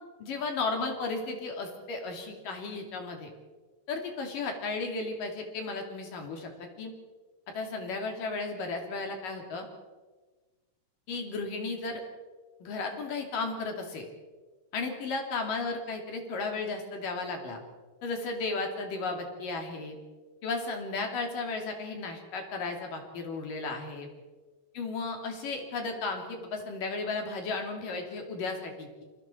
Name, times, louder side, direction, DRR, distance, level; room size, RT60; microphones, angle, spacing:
voice 1, 0.2-3.3 3.9-6.9 7.5-9.7 11.1-12.0 12.6-14.1 14.7-17.6 18.0-20.0 20.4-24.1 24.7-29.0, left 3 dB, 55° left, 3 dB, 4.2 m, -34 dB
28.5 x 23.5 x 4.5 m, 1.3 s
omnidirectional pair, 4.8 m